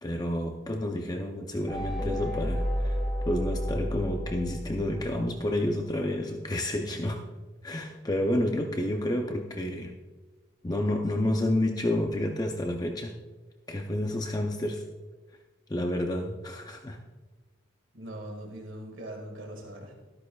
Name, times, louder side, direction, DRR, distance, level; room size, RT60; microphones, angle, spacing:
voice 1, 0.0-7.2 7.6-9.9 10.6-13.2 13.7-14.8 15.7-17.0, left 1 dB, 20° left, 3 dB, 0.6 m, -30 dB
sound 1, 1.7-5.4, equal, 5° right, 1.9 m, -31 dB
voice 2, 17.9-19.9, right 1 dB, 70° right, 2 dB, 2.0 m, -41 dB
13.0 x 13.0 x 2.3 m, 1.3 s
head